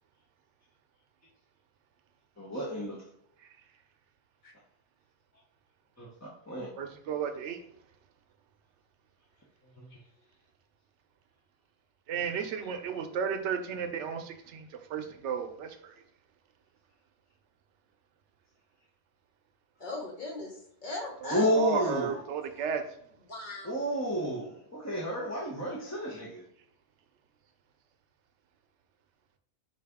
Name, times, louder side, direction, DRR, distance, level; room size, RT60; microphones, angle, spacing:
voice 1, 2.4-3.0 6.0-6.7 9.8-9.9 21.3-22.2 23.6-26.4, equal, 20° left, -4 dB, 0.5 m, -31 dB
voice 2, 6.8-7.6 12.1-15.7 21.2-22.8, right 6 dB, 85° right, 7 dB, 0.9 m, -33 dB
voice 3, 19.8-22.2 22.5-22.6 23.3-23.8 26.1-26.3, left 2 dB, 45° left, -1 dB, 1.0 m, -40 dB
4.6 x 2.6 x 3.4 m, 0.72 s
omnidirectional pair, 1.2 m